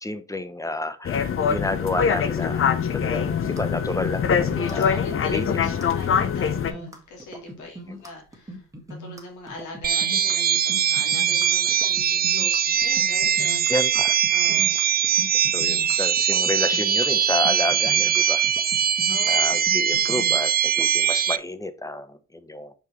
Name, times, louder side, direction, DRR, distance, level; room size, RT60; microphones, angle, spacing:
voice 1, 0.0-5.0 5.3-5.5 7.8-7.9 13.7-14.2 14.5-14.6 15.5-18.4 19.3-22.7, left 2 dB, 10° left, 12 dB, 0.8 m, -30 dB
sound 1, 1.1-6.7, left 7 dB, 45° left, 0.8 m, -23 dB
sound 2, 3.0-20.9, equal, 10° right, 2.0 m, -40 dB
voice 2, 4.6-8.6 9.0-14.0 14.3-15.1 19.1-19.6, left 2 dB, 75° left, -1 dB, 3.2 m, -41 dB
sound 3, 9.8-21.4, right 9 dB, 30° right, 0.4 m, -21 dB
6.1 x 5.4 x 3.2 m, 0.34 s
cardioid pair, 90°, 30 cm